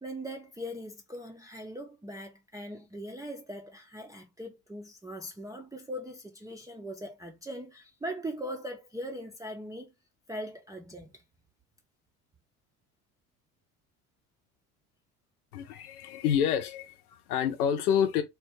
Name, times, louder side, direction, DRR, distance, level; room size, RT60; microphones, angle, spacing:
voice 1, 0.0-9.9 10.3-11.2, equal, 10° right, 0.5 m, -40 dB
voice 2, 15.5-18.2, left 8 dB, 80° left, 0.8 m, -28 dB
3.2 x 2.2 x 3.1 m
hypercardioid pair, 65°, 44 cm